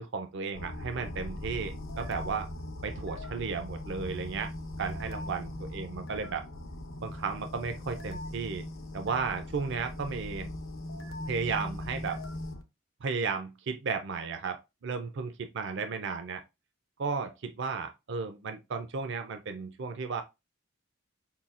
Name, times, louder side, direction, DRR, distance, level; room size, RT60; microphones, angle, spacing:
voice 1, 0.0-2.5 2.8-4.5 4.8-6.4 7.0-8.6 8.9-10.5 11.2-12.2 13.0-16.4 17.0-20.2, right 5 dB, 60° right, 0.5 m, -34 dB
sound 1, 0.5-12.6, left 1 dB, 70° left, 0.7 m, -40 dB
5.6 x 2.3 x 2.4 m
head